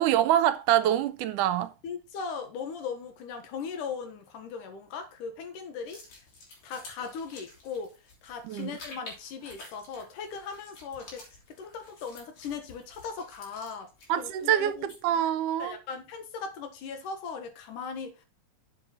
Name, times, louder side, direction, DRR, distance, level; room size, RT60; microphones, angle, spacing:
voice 1, 0.0-1.7 8.5-8.7 14.1-15.8, right 11 dB, 85° right, 2.1 m, -25 dB
voice 2, 1.8-6.2 6.6-13.9 14.2-14.9 15.6-18.3, left 5 dB, 75° left, 3.0 m, -38 dB
sound 1, 5.8-15.2, left 2 dB, 60° left, 4.2 m, -51 dB
7.8 x 7.2 x 4.2 m
omnidirectional pair, 3.7 m